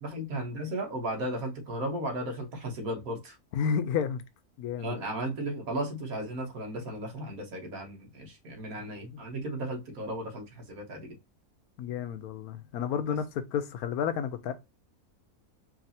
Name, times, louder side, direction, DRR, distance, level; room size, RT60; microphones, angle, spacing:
voice 1, 0.0-3.4 4.8-11.2 13.1-13.2, right 1 dB, 70° right, 1.6 m, -35 dB
voice 2, 3.5-4.2 4.6-5.0 11.8-14.5, left 7 dB, 80° left, 1.1 m, -31 dB
4.7 x 2.7 x 2.8 m
omnidirectional pair, 1.6 m